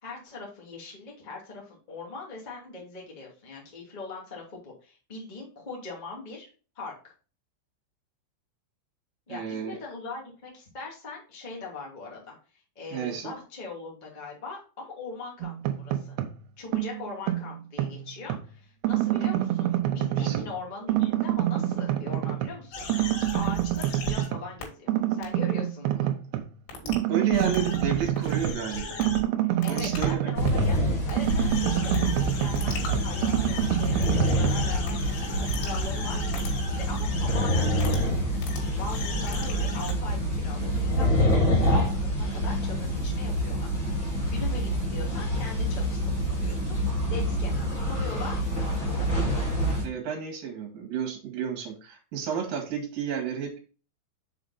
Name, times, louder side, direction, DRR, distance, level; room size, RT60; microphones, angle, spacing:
voice 1, 0.0-6.5 6.7-7.1 9.3-16.2 16.6-26.1 29.6-30.8 31.1-46.8 47.1-48.5 49.0-49.3, left 3 dB, 85° left, -3 dB, 0.4 m, -41 dB
voice 2, 9.3-9.8 12.9-13.3 20.2-20.5 26.8-29.0 29.7-30.3 49.8-53.6, right 7 dB, 55° right, 2 dB, 3.1 m, -31 dB
sound 1, 15.4-16.4 16.7-18.5 18.8-20.6 20.9-22.6 22.9-24.5 24.9-26.5 26.9-30.9 31.2-34.5, right 13 dB, 80° right, 2.5 m, -27 dB
sound 2, 22.7-24.3 24.6-24.7 25.2-25.3 26.7-26.9 27.3-29.2 29.6-30.1 30.5-30.8 31.1-38.1 38.4-39.9, left 2 dB, 70° left, 4.4 m, -36 dB
sound 3, 30.3-49.8, equal, 30° left, 2.7 m, -27 dB
7.3 x 5.1 x 4.0 m, 0.36 s
omnidirectional pair, 5.6 m